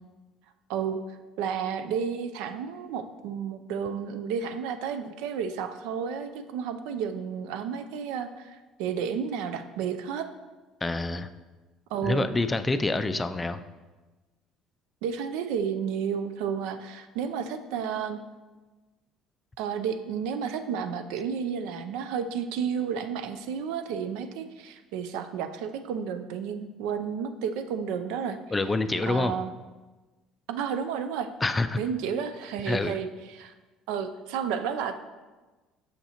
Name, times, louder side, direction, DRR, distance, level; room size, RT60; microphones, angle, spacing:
voice 1, 0.7-10.3 11.9-12.3 15.0-18.2 19.6-28.4 29.0-29.5 30.5-31.3 31.8-33.5 33.9-35.0, right 7 dB, 80° right, 9 dB, 0.4 m, -32 dB
voice 2, 10.8-11.3 12.0-13.6 28.5-29.3 31.4-31.8 32.7-33.0, left 2 dB, 20° left, 10 dB, 0.3 m, -27 dB
6.4 x 5.6 x 2.9 m, 1.2 s
supercardioid pair, 100°, 0 cm